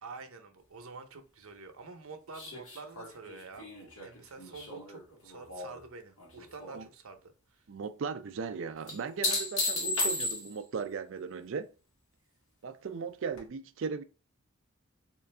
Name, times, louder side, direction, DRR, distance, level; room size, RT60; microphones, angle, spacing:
voice 1, 0.0-7.6, right 4 dB, 90° right, 0.7 m, -48 dB
sound 1, 2.3-5.8 6.2-6.8 8.9-10.8 13.4-13.5, left 2 dB, 80° left, 1.4 m, -35 dB
voice 2, 7.7-11.7 12.6-14.0, right 5 dB, 60° right, 0.4 m, -37 dB
3.8 x 2.5 x 3.2 m
head